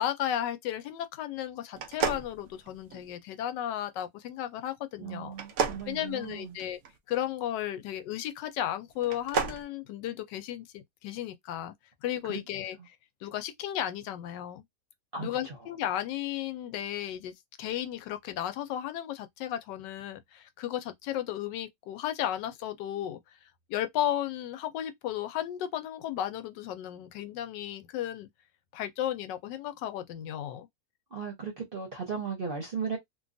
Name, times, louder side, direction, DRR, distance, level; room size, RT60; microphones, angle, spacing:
voice 1, 0.0-5.3 5.9-6.8 7.1-11.7 12.0-13.0 13.2-14.6 15.2-23.2 23.7-28.3 28.7-30.7, left 11 dB, 80° left, 1.2 m, -34 dB
sound 1, 1.7-3.1 5.3-6.9 9.0-9.6, right 6 dB, 75° right, 0.6 m, -32 dB
voice 2, 5.0-6.6 12.3-12.4 15.1-15.5 31.1-33.0, right 5 dB, 45° right, 0.8 m, -36 dB
3.0 x 2.3 x 2.5 m
omnidirectional pair, 1.9 m